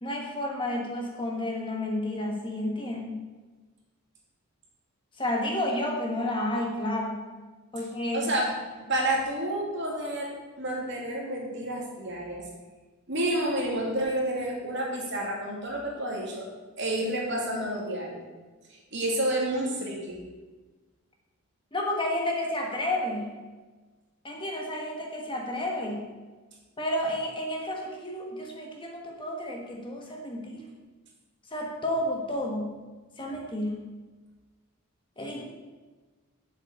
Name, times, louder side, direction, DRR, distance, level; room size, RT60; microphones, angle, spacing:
voice 1, 0.0-3.2 5.2-7.2 7.7-8.3 21.7-23.3 24.2-26.0 26.8-30.7 31.5-32.7 33.2-33.8 35.2-35.5, left 1 dB, 20° left, 0 dB, 1.5 m, -31 dB
voice 2, 8.1-8.5 8.8-12.5 13.1-16.5 16.8-18.2 18.9-20.3, right 1 dB, 55° right, -2 dB, 2.7 m, -30 dB
7.9 x 7.1 x 8.1 m, 1.3 s
head